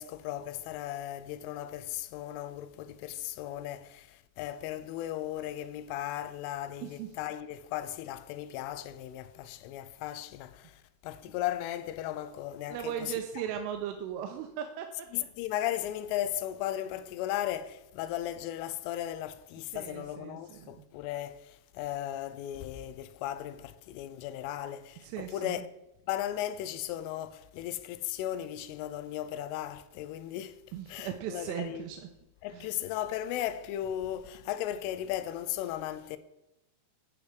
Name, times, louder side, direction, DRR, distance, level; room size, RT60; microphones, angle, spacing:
voice 1, 0.0-13.4 15.1-25.7 26.1-30.6 30.9-31.9 32.4-36.2, left 12 dB, 85° left, 3.1 m, -36 dB
voice 2, 12.7-15.1 19.7-20.8 25.0-25.6 30.7-32.1 32.5-32.7, right 9 dB, 90° right, 3.3 m, -38 dB
11.5 x 7.0 x 4.8 m
omnidirectional pair, 5.7 m